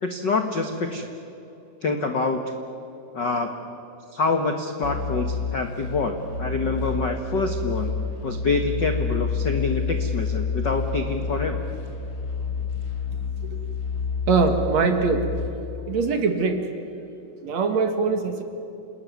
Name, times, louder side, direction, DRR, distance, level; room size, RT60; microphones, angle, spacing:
voice 1, 0.0-1.1 1.8-2.4 3.1-3.5 4.1-11.6, left 3 dB, 55° left, 5 dB, 1.2 m, -26 dB
sound 1, 4.8-15.5, left 5 dB, 25° left, 4.6 m, -29 dB
voice 2, 14.3-15.3 15.9-16.7 17.4-18.4, right 4 dB, 55° right, 6 dB, 2.7 m, -22 dB
28.5 x 20.5 x 9.6 m, 2.9 s
omnidirectional pair, 4.2 m